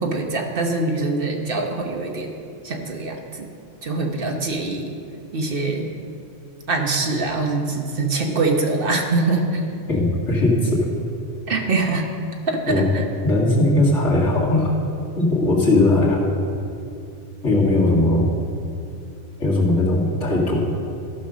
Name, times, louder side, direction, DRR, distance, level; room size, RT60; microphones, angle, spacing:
voice 1, 0.0-2.3 2.6-3.5 3.8-4.9 5.3-5.9 6.7-9.6 11.5-12.1 12.5-13.1, right 3 dB, 55° right, 2 dB, 1.1 m, -23 dB
voice 2, 9.9-10.9 12.7-12.9 13.2-14.7 15.2-16.2 17.4-18.3 19.4-20.6, left 2 dB, 85° left, -5 dB, 2.4 m, -18 dB
14.0 x 5.3 x 6.2 m, 2.5 s
omnidirectional pair, 1.2 m